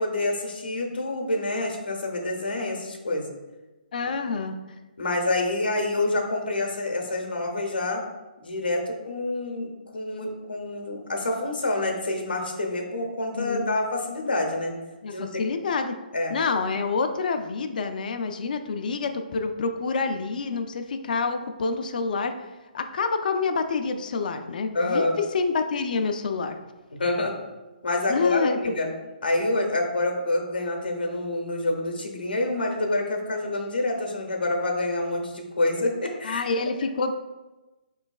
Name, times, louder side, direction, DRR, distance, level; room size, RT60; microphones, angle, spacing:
voice 1, 0.0-3.3 5.0-8.0 8.4-14.7 15.1-15.3 16.1-16.3 24.7-25.2 26.9-27.3 27.8-28.9 29.2-36.4, left 2 dB, 85° left, 2 dB, 0.7 m, -27 dB
voice 2, 3.9-4.6 13.3-13.7 15.0-15.9 16.3-22.3 22.7-25.1 25.3-26.6 28.1-28.8 36.2-37.1, left 4 dB, 60° left, 7 dB, 0.3 m, -27 dB
4.5 x 3.1 x 2.3 m, 1.1 s
figure-of-eight pair, 140°, 5 cm